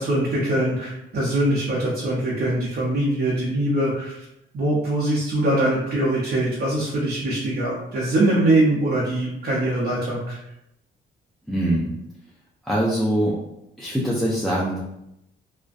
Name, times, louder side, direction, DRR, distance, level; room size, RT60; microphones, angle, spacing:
voice 1, 0.0-4.2 4.5-10.4, right 1 dB, 50° right, -6 dB, 0.7 m, -22 dB
voice 2, 11.5-11.9 12.7-13.3 13.8-14.8, right 1 dB, ahead, -6 dB, 0.5 m, -23 dB
2.4 x 2.1 x 2.5 m, 0.83 s
cardioid pair, 90°, 20 cm